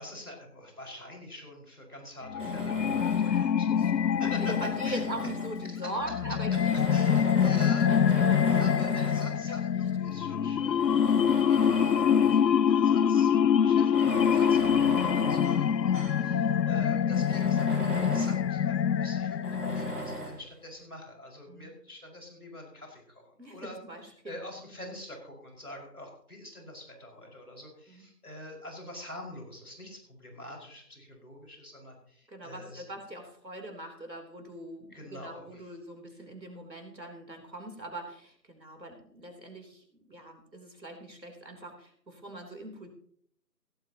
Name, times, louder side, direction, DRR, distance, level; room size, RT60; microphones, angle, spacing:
voice 1, 0.0-4.5 4.8-5.0 5.7-5.8 6.9-7.9 8.5-13.3 13.6-23.8 24.3-32.8 34.9-35.7, left 1 dB, 60° left, 1 dB, 5.5 m, -45 dB
sound 1, 2.3-20.2, left 8 dB, 80° left, 0.6 m, -25 dB
Tools, 2.4-3.5 4.2-5.8 6.5-9.4 10.1-10.2 10.7-12.5 12.9-13.0 13.8-16.3 16.7-16.8 17.1-18.5 19.4-20.4, right 1 dB, 70° right, 4.6 m, -38 dB
voice 2, 3.1-3.9 4.2-8.5 9.2-9.8 10.4-10.7 16.2-16.5 21.5-21.7 23.4-24.4 27.9-28.1 32.3-42.9, right 1 dB, 90° right, 3 dB, 3.6 m, -42 dB
17.5 x 12.5 x 2.9 m, 0.63 s
figure-of-eight pair, 175°, 50 cm